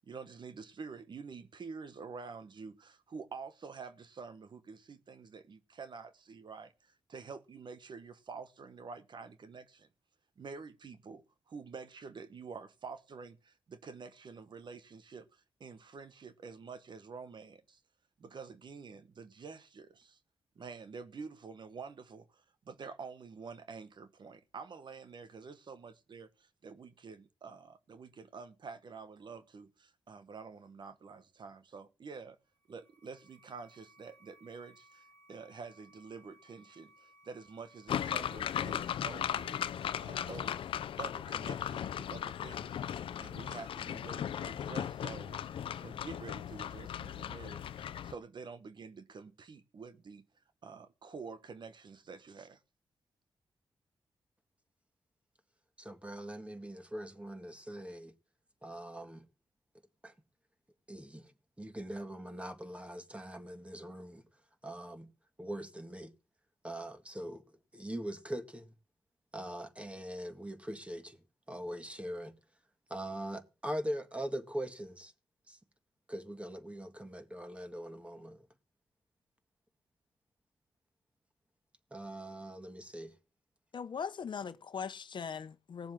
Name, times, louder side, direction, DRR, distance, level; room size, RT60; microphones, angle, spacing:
voice 1, 0.0-9.9 10.4-17.8 18.2-20.2 20.5-32.4 32.7-40.7 41.0-45.5 45.8-50.3 50.6-52.6, right 5 dB, 60° right, 1.2 m, -48 dB
sound 1, 32.5-39.0, right 1 dB, 25° left, 2.0 m, -63 dB
sound 2, 37.9-48.1, left 9 dB, 85° left, 0.6 m, -37 dB
voice 2, 55.8-58.1 58.6-59.2 60.0-60.1 60.9-61.3 61.6-64.2 64.6-65.1 65.4-66.1 66.6-67.4 67.7-68.7 69.3-71.2 71.5-72.3 72.9-75.1 75.5-75.6 76.1-78.5 81.9-83.1, equal, 15° right, 2.0 m, -42 dB
voice 3, 83.7-85.9, left 6 dB, 60° left, 1.0 m, -40 dB
17.5 x 7.3 x 7.6 m
cardioid pair, 75°, 9 cm